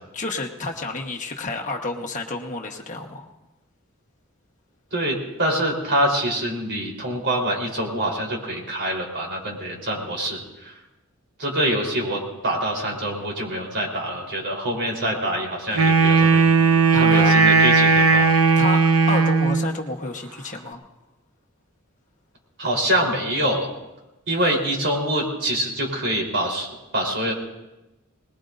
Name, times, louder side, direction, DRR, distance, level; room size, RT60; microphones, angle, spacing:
voice 1, 0.1-3.3 16.9-17.3 18.6-20.9, left 2 dB, 35° left, 2 dB, 1.3 m, -30 dB
voice 2, 4.9-10.8 11.4-18.4 22.6-23.7 24.3-26.7 26.9-27.3, right 1 dB, 55° right, -1 dB, 3.9 m, -25 dB
Wind instrument woodwind instrument, 15.7-19.7, right 4 dB, 80° right, 1.1 m, -16 dB
23.5 x 20.5 x 2.6 m, 0.99 s
head